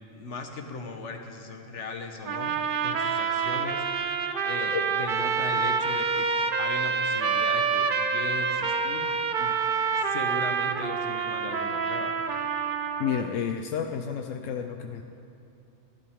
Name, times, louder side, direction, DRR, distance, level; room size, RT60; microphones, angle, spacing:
voice 1, 0.1-2.5 2.8-3.8 4.4-6.3 6.6-9.6 10.0-12.3, left 3 dB, 70° left, 5 dB, 1.5 m, -37 dB
sound 1, 2.3-13.3, right 5 dB, 50° right, 0.8 m, -27 dB
voice 2, 13.0-15.0, left 7 dB, 90° left, 6 dB, 1.0 m, -30 dB
28.0 x 11.5 x 3.6 m, 2.8 s
omnidirectional pair, 1.3 m